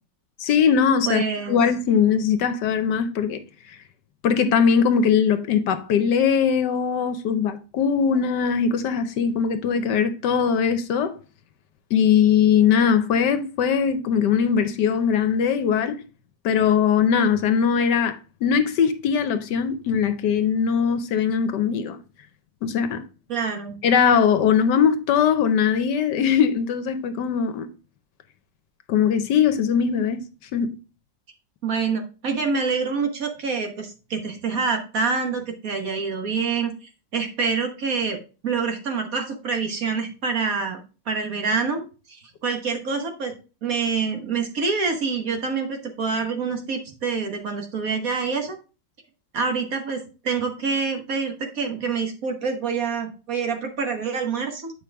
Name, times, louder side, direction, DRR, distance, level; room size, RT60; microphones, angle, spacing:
voice 1, 0.4-1.2 1.5-3.4 4.2-11.1 11.9-16.0 16.4-22.0 22.6-23.0 23.8-27.7 28.9-30.2 30.5-30.8, left 7 dB, 70° left, 1.3 m, -20 dB
voice 2, 1.1-1.6 23.3-23.7 31.6-40.8 41.1-41.8 42.1-43.3 43.6-48.6 49.3-54.7, right 5 dB, 50° right, 1.5 m, -26 dB
8.4 x 5.2 x 3.4 m
omnidirectional pair, 2.0 m